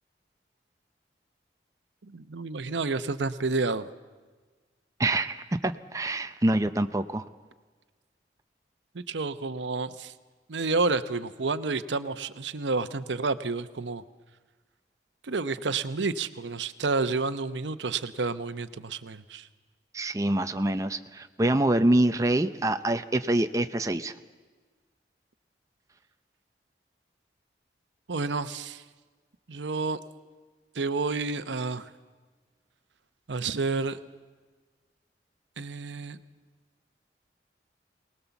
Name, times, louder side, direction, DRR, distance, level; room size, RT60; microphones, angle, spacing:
voice 1, 2.0-3.9 8.9-10.1 10.5-14.0 15.2-19.5 28.1-28.8 29.5-30.0 30.7-31.9 33.3-34.0 35.6-36.2, right 3 dB, 85° right, 12 dB, 0.8 m, -30 dB
voice 2, 5.0-7.2 19.9-24.1, right 1 dB, 20° right, 8 dB, 0.6 m, -25 dB
23.0 x 19.0 x 7.0 m, 1.4 s
head